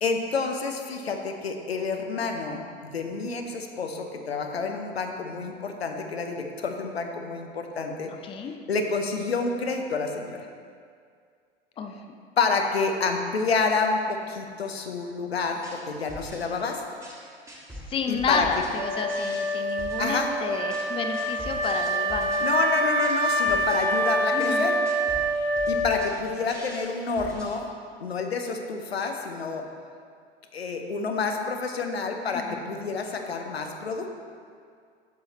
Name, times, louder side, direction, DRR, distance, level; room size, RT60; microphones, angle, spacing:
voice 1, 0.0-2.6 2.9-8.1 8.7-10.4 12.4-16.8 18.1-18.5 20.0-20.3 22.4-24.8 25.7-27.7 28.0-29.6 30.5-34.1, left 4 dB, 80° left, 4 dB, 0.7 m, -28 dB
voice 2, 8.2-8.5 11.8-11.9 17.9-22.3 24.3-24.7 32.3-32.7, left 5 dB, 15° left, 5 dB, 0.5 m, -30 dB
sound 1, 15.5-27.6, equal, 10° right, 1.6 m, -44 dB
Wind instrument woodwind instrument, 18.7-26.3, right 1 dB, 50° right, 1.6 m, -26 dB
7.2 x 6.3 x 4.0 m, 2.2 s
figure-of-eight pair, 80°, 31 cm